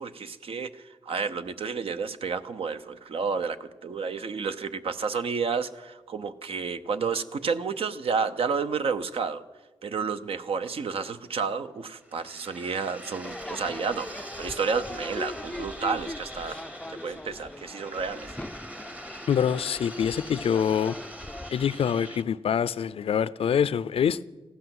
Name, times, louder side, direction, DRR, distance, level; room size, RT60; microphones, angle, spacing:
voice 1, 0.0-9.4 9.8-16.6 16.9-18.3, right 5 dB, 70° right, 0.9 m, -31 dB
sound 1, 11.9-22.2, right 1 dB, 15° right, 0.9 m, -44 dB
Crowd / Fireworks, 13.2-21.5, left 1 dB, 10° left, 0.4 m, -40 dB
voice 2, 19.3-21.0 21.5-24.2, left 8 dB, 75° left, 0.5 m, -25 dB
15.5 x 11.5 x 7.8 m
cardioid pair, 95°, 10 cm